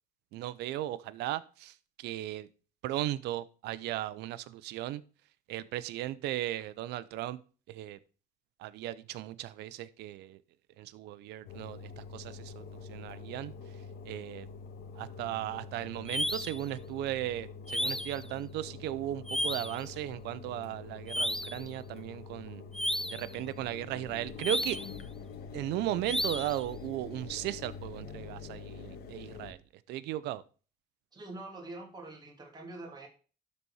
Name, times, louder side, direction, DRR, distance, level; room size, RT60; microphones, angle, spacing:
voice 1, 0.3-2.5 2.8-5.0 5.5-7.4 7.7-8.0 8.6-10.4 10.8-12.6 12.9-13.5 14.1-14.5 15.0-22.6 23.1-24.8 25.5-29.6 29.9-30.4, right 14 dB, 85° right, 15 dB, 0.6 m, -36 dB
Engine, 11.5-29.5, left 5 dB, 70° left, 1.5 m, -46 dB
sound 1, 16.1-16.6 17.7-18.2 19.3-19.8 21.1-21.6 22.7-23.3 24.4-25.0 26.0-26.6, left 1 dB, 5° left, 0.5 m, -33 dB
voice 2, 31.1-33.1, right 2 dB, 25° right, 0 dB, 2.7 m, -45 dB
12.0 x 4.2 x 4.7 m, 0.37 s
cardioid pair, 110°, 17 cm